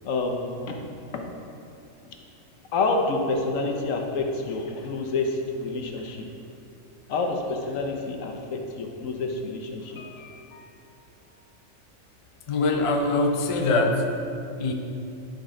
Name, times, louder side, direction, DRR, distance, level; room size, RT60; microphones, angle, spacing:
voice 1, 0.0-0.8 1.1-1.3 2.7-6.3 7.1-10.9, left 3 dB, 70° left, 3 dB, 1.1 m, -28 dB
voice 2, 12.5-14.1 14.6-14.7, left 2 dB, 55° left, 3 dB, 0.3 m, -23 dB
10.5 x 3.9 x 3.7 m, 2.6 s
omnidirectional pair, 1.4 m